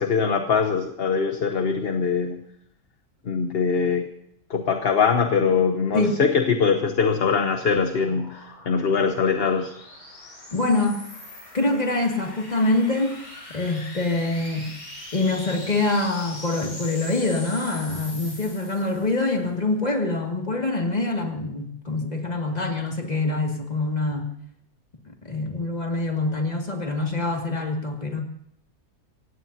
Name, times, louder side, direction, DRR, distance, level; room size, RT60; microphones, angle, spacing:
voice 1, 0.0-2.4 3.2-4.1 4.5-9.7, left 5 dB, 45° left, 6 dB, 1.0 m, -22 dB
sound 1, 7.2-19.2, left 1 dB, 65° left, 5.1 m, -42 dB
voice 2, 10.5-11.1 11.5-13.2 13.5-14.7 15.1-24.3 25.2-28.2, left 2 dB, 25° left, 1 dB, 2.4 m, -25 dB
27.5 x 16.5 x 2.8 m, 0.72 s
omnidirectional pair, 1.6 m